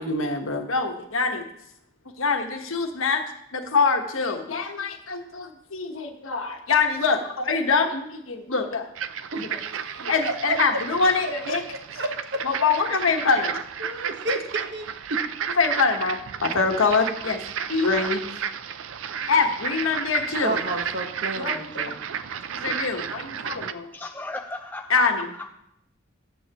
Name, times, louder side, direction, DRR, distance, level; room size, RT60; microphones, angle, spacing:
voice 1, 0.0-1.4 2.2-3.2 3.5-8.9 9.4-9.5 10.0-11.6 12.4-13.6 15.6-17.4 17.7-18.2 19.3-20.6 21.4-21.6 22.6-23.9 24.9-25.3, left 4 dB, 85° left, 4 dB, 1.3 m, -24 dB
sound 1, 9.0-23.7, right 8 dB, 75° right, 0.4 m, -32 dB
voice 2, 9.3-10.6 12.0-12.4 13.8-15.2 20.4-22.0, right 2 dB, 55° right, 5 dB, 1.2 m, -31 dB
voice 3, 23.9-25.0 25.3-25.5, left 2 dB, 10° left, 3 dB, 0.4 m, -36 dB
14.5 x 8.0 x 3.0 m, 0.78 s
head